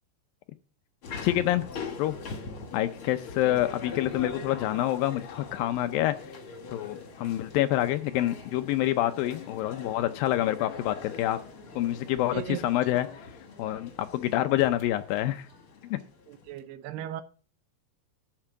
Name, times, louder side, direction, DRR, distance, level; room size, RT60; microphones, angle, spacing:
sound 1, 1.0-16.6, left 4 dB, 55° left, 1.5 m, -42 dB
voice 1, 1.2-1.7 2.0-2.2 2.7-6.2 6.7-11.4 11.8-13.1 13.6-15.5 15.9-16.0, left 14 dB, 90° left, 2.0 m, -27 dB
voice 2, 16.3-17.2, right 12 dB, 75° right, 2.2 m, -36 dB
13.5 x 4.5 x 7.8 m
omnidirectional pair, 5.0 m